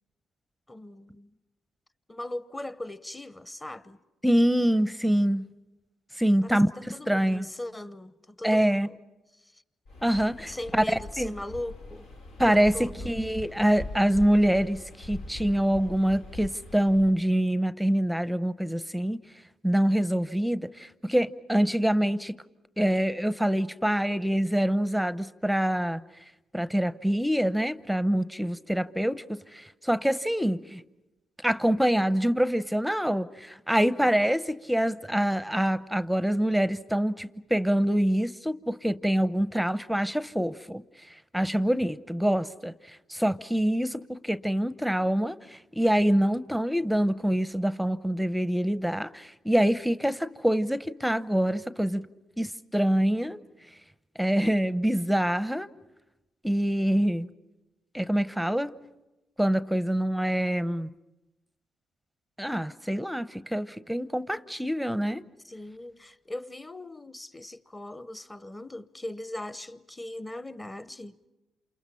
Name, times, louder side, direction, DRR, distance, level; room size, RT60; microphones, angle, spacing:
voice 1, 0.7-1.3 2.1-4.0 6.4-9.0 10.5-12.1 12.4-13.1 33.7-34.2 65.4-71.2, left 1 dB, 20° left, 1.0 m, -39 dB
voice 2, 4.2-5.5 6.2-7.5 8.4-8.9 10.0-10.8 11.2-11.3 12.4-19.2 19.6-22.3 22.8-26.0 26.5-30.8 31.4-40.8 41.3-42.7 43.1-52.1 52.4-53.4 54.2-55.7 56.4-57.3 57.9-58.7 59.4-60.9 62.4-65.2, equal, ahead, 0.8 m, -25 dB
Waves surf, 9.8-17.2, left 2 dB, 85° left, 1.9 m, -42 dB
28.5 x 28.5 x 5.6 m
supercardioid pair, 55°, 0 cm